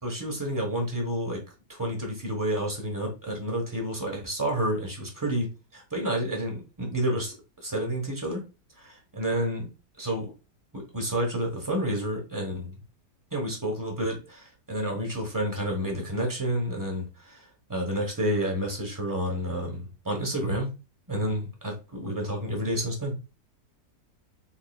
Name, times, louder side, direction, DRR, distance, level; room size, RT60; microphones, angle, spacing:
voice 1, 0.0-1.4 1.7-5.5 5.7-7.3 7.6-8.4 8.8-9.7 10.0-10.3 10.7-12.8 13.3-20.7 21.1-23.1, right 1 dB, 15° right, 1 dB, 1.0 m, -30 dB
3.9 x 3.8 x 2.3 m, 0.30 s
omnidirectional pair, 1.8 m